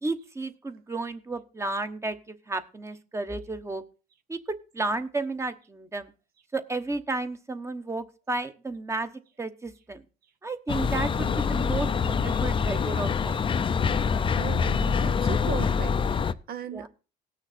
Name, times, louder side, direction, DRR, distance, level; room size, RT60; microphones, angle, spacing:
voice 1, 0.0-3.8 4.3-6.1 6.5-9.1 9.4-10.0 10.4-13.4 16.7-16.9, right 2 dB, 15° right, 1.0 m, -32 dB
sound 1, 10.7-16.3, left 6 dB, 30° left, 0.6 m, -25 dB
voice 2, 14.4-16.9, right 8 dB, 60° right, 1.1 m, -37 dB
18.0 x 6.5 x 4.2 m
cardioid pair, 110°, 17 cm